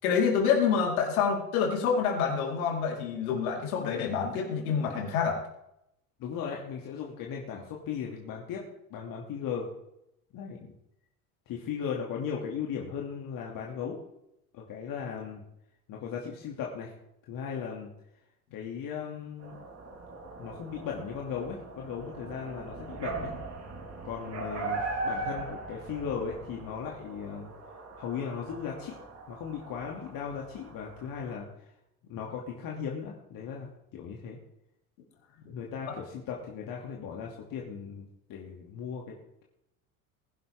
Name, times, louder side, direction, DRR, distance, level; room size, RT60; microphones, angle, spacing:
voice 1, 0.0-5.4, left 6 dB, 70° left, -1 dB, 4.4 m, -27 dB
voice 2, 6.2-8.6 8.9-9.7 10.3-10.7 11.5-14.0 14.5-15.4 15.9-16.9 17.3-17.9 18.5-19.6 20.4-23.3 24.0-27.5 28.0-29.0 29.3-31.7 32.1-34.4 35.4-39.1, left 7 dB, 50° left, -1 dB, 2.7 m, -37 dB
sound 1, 19.4-31.3, right 3 dB, 35° right, 3.6 m, -40 dB
21.0 x 11.0 x 3.7 m, 0.82 s
hypercardioid pair, 70°, 44 cm